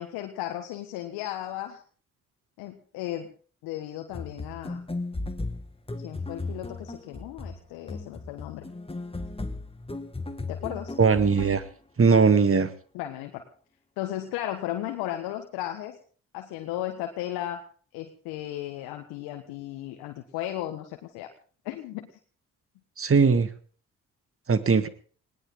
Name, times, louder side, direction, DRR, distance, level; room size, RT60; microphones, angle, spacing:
voice 1, 0.0-1.8 2.6-3.3 3.6-4.8 6.0-8.7 10.5-11.0 12.9-13.4 14.0-16.0 16.3-17.6 17.9-21.3 21.6-22.1, left 13 dB, 80° left, 5 dB, 1.5 m, -35 dB
sound 1, 4.1-11.7, left 2 dB, 15° left, 2.0 m, -36 dB
voice 2, 11.0-11.6 12.0-12.7 23.0-23.5 24.5-24.9, right 5 dB, 35° right, 12 dB, 1.9 m, -20 dB
20.0 x 17.5 x 3.8 m, 0.41 s
hypercardioid pair, 40°, 37 cm